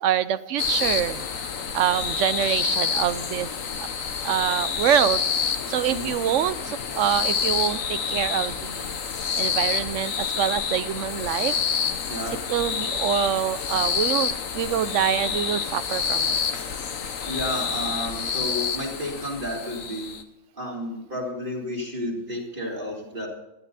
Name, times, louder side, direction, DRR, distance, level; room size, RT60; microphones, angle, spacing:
voice 1, 0.0-1.3 1.7-3.5 4.2-9.0 9.4-11.5 12.5-16.4, right 9 dB, 70° right, 16 dB, 0.9 m, -25 dB
sound 1, 0.6-20.2, left 6 dB, 75° left, 1.5 m, -28 dB
voice 2, 17.3-20.2 20.6-23.3, left 1 dB, 40° right, -3 dB, 3.8 m, -31 dB
16.5 x 11.5 x 4.1 m, 0.93 s
omnidirectional pair, 1.4 m